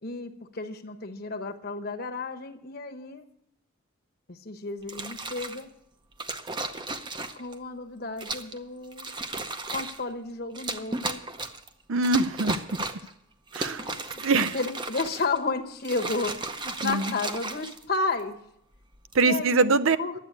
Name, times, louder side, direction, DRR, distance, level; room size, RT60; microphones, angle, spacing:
voice 1, 0.0-3.2 4.3-5.7 7.3-9.1 9.7-11.2 13.8-14.2 14.5-18.4 19.2-20.1, left 3 dB, 45° left, 5 dB, 1.0 m, -32 dB
sound 1, 4.8-5.6 6.2-7.5 8.2-8.6 8.9-10.0 10.5-11.7 12.0-13.1 13.5-15.4 15.8-18.2 18.9-19.3, right 3 dB, 20° right, 0.7 m, -35 dB
voice 2, 11.9-12.6 13.5-13.9 14.2-14.6 16.8-17.1 19.1-20.0, right 3 dB, 70° right, 12 dB, 0.6 m, -23 dB
11.0 x 8.1 x 9.4 m, 0.76 s
head